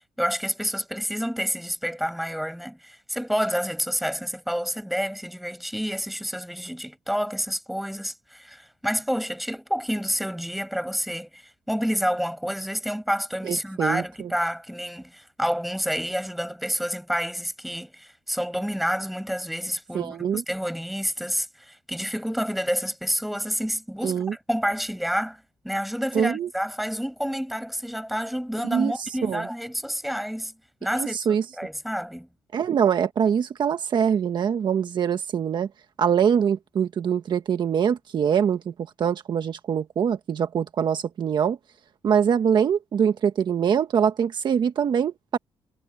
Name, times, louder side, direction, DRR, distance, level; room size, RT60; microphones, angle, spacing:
voice 1, 0.2-30.5 30.8-31.2 31.6-32.3, equal, ahead, 7.8 m, -29 dB
voice 2, 13.4-14.3 19.9-20.4 24.0-24.3 26.1-26.5 28.7-29.4 30.9-31.4 32.5-35.7 36.0-38.7 39.0-41.6 42.0-45.4, right 8 dB, 60° right, 1.4 m, -23 dB
cardioid pair, 105°, 9 cm